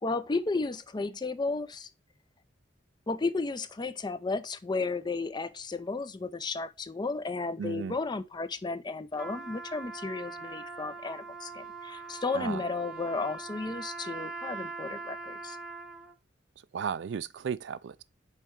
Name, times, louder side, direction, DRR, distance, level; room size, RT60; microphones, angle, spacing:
voice 1, 0.0-1.9 3.1-15.6, left 3 dB, 25° left, 0.4 m, -33 dB
voice 2, 7.6-8.0 12.3-12.6 16.7-18.0, right 7 dB, 70° right, 0.4 m, -34 dB
Trumpet, 9.1-16.1, right 4 dB, 5° right, 0.7 m, -42 dB
5.7 x 4.3 x 4.5 m
head